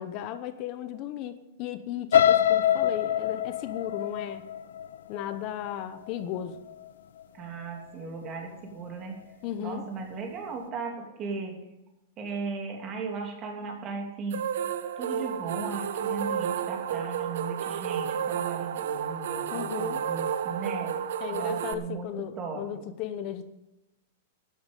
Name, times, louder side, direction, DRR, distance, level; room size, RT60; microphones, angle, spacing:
voice 1, 0.0-4.5 5.1-6.6 9.4-9.8 19.5-20.0 21.2-23.5, left 10 dB, 35° left, 11 dB, 0.9 m, -35 dB
sound 1, 2.1-6.1 6.6-6.9 7.2-7.3, left 10 dB, 90° left, 0.6 m, -25 dB
voice 2, 7.3-9.3 9.6-11.6 12.2-14.5 15.0-21.0 21.3-22.9, right 4 dB, 25° right, 1 dB, 2.8 m, -37 dB
sound 2, 14.3-21.7, right 8 dB, 70° right, 0.9 m, -31 dB
13.0 x 10.0 x 5.4 m, 0.94 s
supercardioid pair, 160°, 0 cm